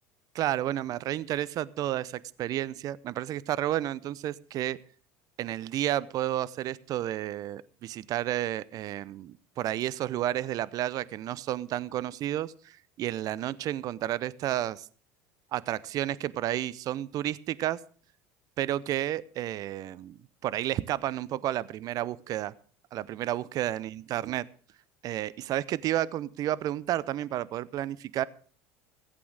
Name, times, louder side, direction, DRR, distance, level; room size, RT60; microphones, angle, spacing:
voice 1, 0.3-4.8 5.4-14.9 15.5-17.8 18.6-20.2 20.4-22.5 22.9-24.4 25.0-28.2, right 13 dB, 50° right, 20 dB, 0.6 m, -31 dB
15.0 x 8.5 x 6.4 m, 0.43 s
supercardioid pair, 90°, 8 cm